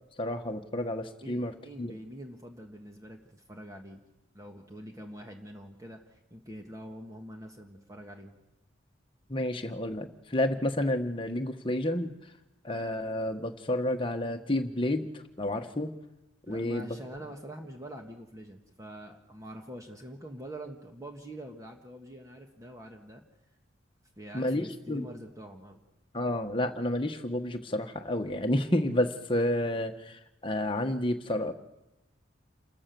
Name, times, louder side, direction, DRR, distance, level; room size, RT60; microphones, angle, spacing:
voice 1, 0.2-1.5 1.8-1.9 9.3-12.1 12.6-15.1 15.4-15.9 16.5-17.0 24.3-25.0 26.1-30.1 30.4-31.5, left 1 dB, 25° left, 5 dB, 1.4 m, -30 dB
voice 2, 1.2-4.0 4.3-8.4 16.5-23.2 24.2-25.8, equal, 15° right, 3 dB, 1.6 m, -45 dB
28.5 x 14.0 x 7.0 m, 0.95 s
head